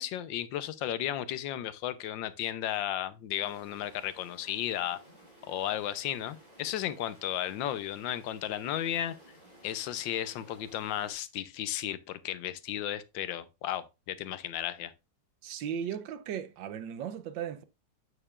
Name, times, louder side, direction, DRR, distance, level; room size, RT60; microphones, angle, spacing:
voice 1, 0.0-5.0 5.5-9.1 9.6-14.9, left 11 dB, 85° left, 1.4 m, -34 dB
sound 1, 3.4-11.1, equal, 50° right, 4.0 m, -56 dB
voice 2, 15.4-17.6, right 8 dB, 85° right, 1.4 m, -36 dB
8.8 x 6.6 x 2.4 m
omnidirectional pair, 2.0 m